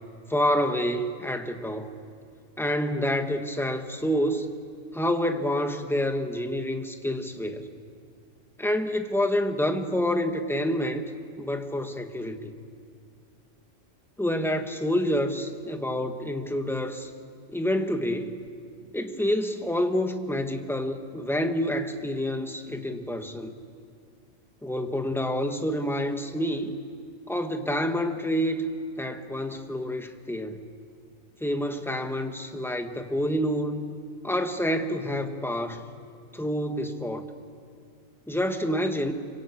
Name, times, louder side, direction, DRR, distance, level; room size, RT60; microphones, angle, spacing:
voice 1, 0.3-1.9 2.6-4.5 4.9-7.7 8.6-11.0 11.4-12.6 14.2-17.1 17.5-18.4 18.9-23.5 24.6-26.7 27.3-28.6 29.0-30.6 31.4-33.9 34.2-35.8 36.3-37.2 38.3-39.1, equal, ahead, 6 dB, 1.3 m, -28 dB
26.0 x 24.0 x 8.5 m, 2.3 s
omnidirectional pair, 1.3 m